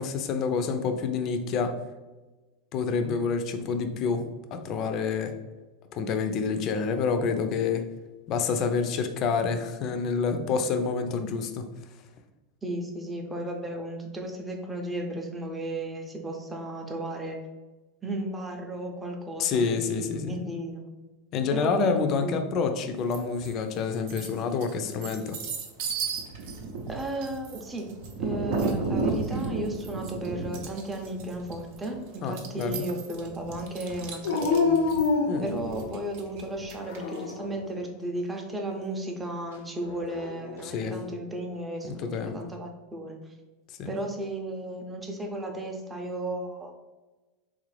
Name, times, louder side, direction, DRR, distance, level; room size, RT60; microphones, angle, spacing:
voice 1, 0.0-1.8 2.7-5.4 5.9-7.9 8.3-11.7 19.4-20.3 21.3-25.4 32.2-32.8 35.3-35.5 40.6-41.0 41.8-42.4 43.8-43.9, left 5 dB, 40° left, 7 dB, 0.4 m, -28 dB
voice 2, 12.6-17.4 18.0-20.8 21.5-22.4 26.9-27.9 28.2-34.7 35.4-43.3 43.9-46.7, right 1 dB, 10° right, 2 dB, 0.6 m, -34 dB
sound 1, 23.1-23.5 23.9-37.2, right 4 dB, 65° right, 0.6 m, -34 dB
Dog, 34.2-36.1 36.8-37.6 39.8-40.7, left 4 dB, 90° left, 0.5 m, -27 dB
3.6 x 2.5 x 3.2 m, 1.2 s
supercardioid pair, 140°, 0 cm